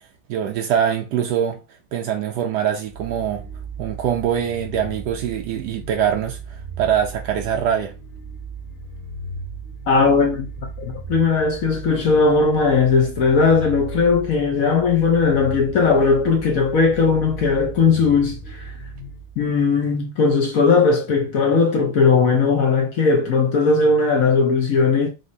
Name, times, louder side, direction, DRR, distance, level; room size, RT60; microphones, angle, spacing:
voice 1, 0.3-1.6 1.9-3.4 3.8-7.9, right 9 dB, 85° right, 0.9 m, -23 dB
sound 1, 2.9-19.7, right 3 dB, 50° left, 1.1 m, -36 dB
voice 2, 9.9-10.5 10.8-18.7 19.4-25.1, left 4 dB, 70° left, 0.8 m, -18 dB
5.2 x 3.3 x 2.6 m
omnidirectional pair, 2.4 m